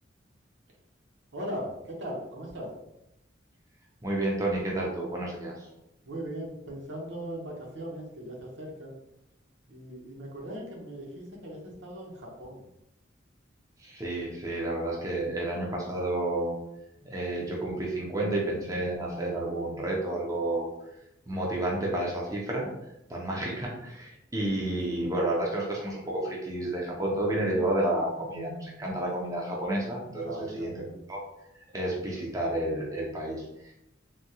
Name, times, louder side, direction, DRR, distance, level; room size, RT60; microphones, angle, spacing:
voice 1, 1.3-2.7 6.0-9.0 9.7-12.7 25.0-25.1 30.2-31.0, equal, 70° right, -2 dB, 0.8 m, -39 dB
voice 2, 4.0-5.7 13.8-16.5 17.0-20.7 21.3-22.7 23.1-30.7 31.1-31.2 31.7-33.7, right 1 dB, 20° right, -3 dB, 0.5 m, -30 dB
3.5 x 2.2 x 2.8 m, 0.84 s
head